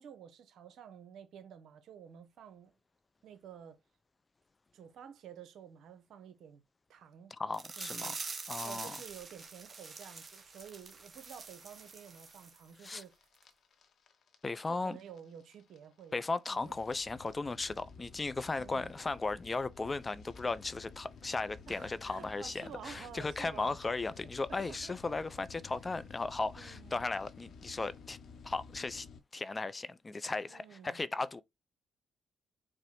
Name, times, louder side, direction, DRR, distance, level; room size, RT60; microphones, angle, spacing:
voice 1, 0.0-2.8 3.2-3.8 4.7-6.6 6.9-7.4 7.8-8.2 8.6-13.1 14.7-16.2 16.6-16.9 18.5-18.9 21.7-23.8 24.5-25.0 26.6-27.0 30.5-31.0, right 8 dB, 70° right, 0.7 m, -51 dB
voice 2, 7.3-8.1 8.5-9.0 12.8-13.0 14.4-15.0 16.1-28.2 28.4-29.1 29.3-31.4, left 3 dB, 30° left, 0.4 m, -36 dB
sound 1, 7.5-12.6 12.9-13.0 13.4-13.5, right 4 dB, 40° right, 1.0 m, -45 dB
sound 2, 9.8-29.2, left 5 dB, 60° left, 0.7 m, -54 dB
4.7 x 2.0 x 3.0 m
hypercardioid pair, 45°, 0 cm